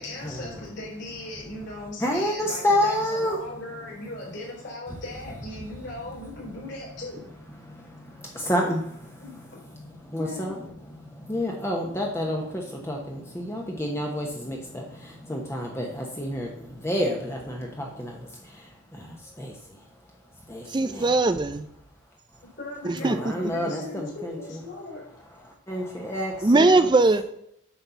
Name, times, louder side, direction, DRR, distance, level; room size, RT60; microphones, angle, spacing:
voice 1, 0.0-7.2 9.2-9.4 10.2-10.5 22.6-25.0, left 2 dB, 55° left, -4 dB, 4.3 m, -38 dB
voice 2, 2.0-3.4 7.7-9.2 10.0-10.5 10.9-19.5 20.5-21.1 23.0-24.3 25.7-26.8, equal, 10° left, 0 dB, 1.0 m, -29 dB
voice 3, 20.7-21.7 22.8-23.2 23.6-23.7 26.4-27.2, right 2 dB, 20° right, 11 dB, 0.4 m, -20 dB
9.0 x 4.3 x 6.9 m, 0.73 s
head